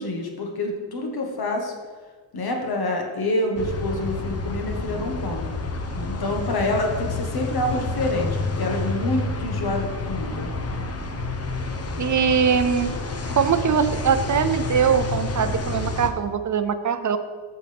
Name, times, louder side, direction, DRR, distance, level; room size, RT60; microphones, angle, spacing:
voice 1, 0.0-1.7 2.3-5.5 6.0-10.5, left 1 dB, 50° left, 2 dB, 1.7 m, -27 dB
sound 1, 3.6-16.1, left 3 dB, 30° left, 0.9 m, -29 dB
voice 2, 12.0-12.9 13.4-17.2, right 7 dB, 40° right, 10 dB, 0.6 m, -22 dB
14.0 x 6.4 x 3.5 m, 1.5 s
cardioid pair, 110°, 48 cm